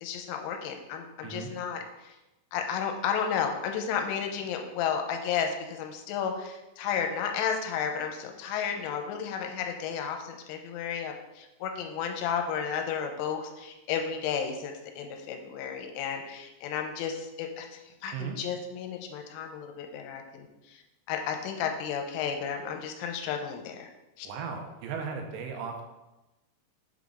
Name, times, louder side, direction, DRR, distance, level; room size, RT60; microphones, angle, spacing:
voice 1, 0.0-2.2 2.5-20.8 21.1-23.9 24.2-24.3, left 7 dB, 85° left, 4 dB, 3.1 m, -33 dB
voice 2, 24.2-25.8, right 6 dB, 90° right, 3 dB, 3.2 m, -36 dB
7.3 x 3.8 x 3.6 m, 1.0 s
omnidirectional pair, 5.6 m